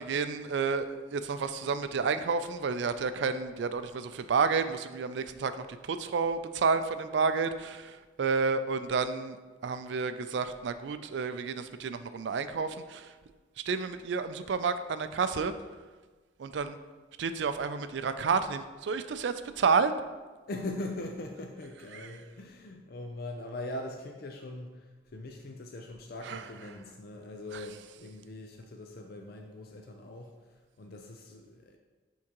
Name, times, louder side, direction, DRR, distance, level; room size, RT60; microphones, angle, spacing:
voice 1, 0.0-9.4 9.6-13.1 13.7-15.5 16.4-16.8 17.2-19.9 26.3-26.4, right 5 dB, 70° right, 11 dB, 0.4 m, -30 dB
voice 2, 20.5-31.8, left 2 dB, 55° left, 2 dB, 0.5 m, -41 dB
11.0 x 3.7 x 2.9 m, 1.3 s
head